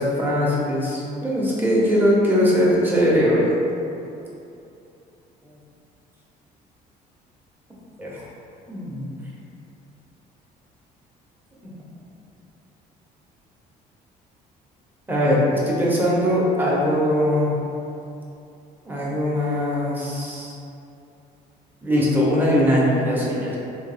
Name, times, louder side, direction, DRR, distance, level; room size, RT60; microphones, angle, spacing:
voice 1, 0.0-3.5 8.0-8.2 8.7-9.1 11.6-11.7 15.1-17.5 18.9-20.6 21.8-23.6, equal, 10° right, -6 dB, 0.8 m, -21 dB
3.2 x 2.6 x 3.4 m, 2.8 s
cardioid pair, 110°, 17 cm